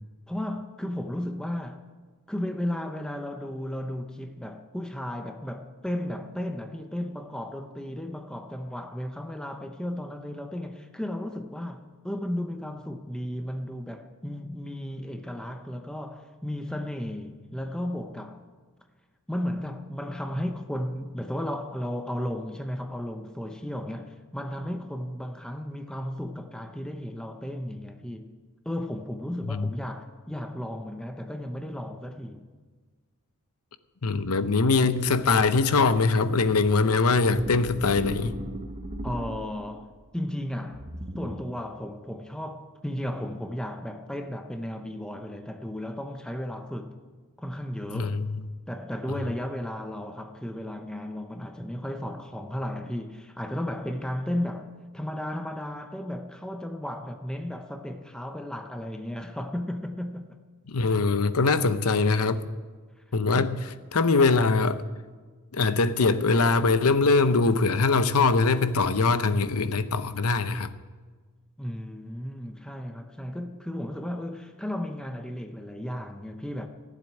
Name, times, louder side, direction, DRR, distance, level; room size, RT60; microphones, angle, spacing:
voice 1, 0.3-1.8 2.3-18.4 19.3-28.3 28.6-32.4 39.0-47.0 47.4-48.2 48.7-60.4 71.6-76.7, left 1 dB, 5° left, 0.7 m, -34 dB
voice 2, 34.0-38.4 47.9-48.3 60.7-62.5 63.1-64.8 65.5-70.7, left 3 dB, 70° left, 0.8 m, -22 dB
sound 1, 37.3-39.8 40.7-41.7, right 1 dB, 30° right, 1.0 m, -37 dB
15.0 x 7.5 x 10.0 m
head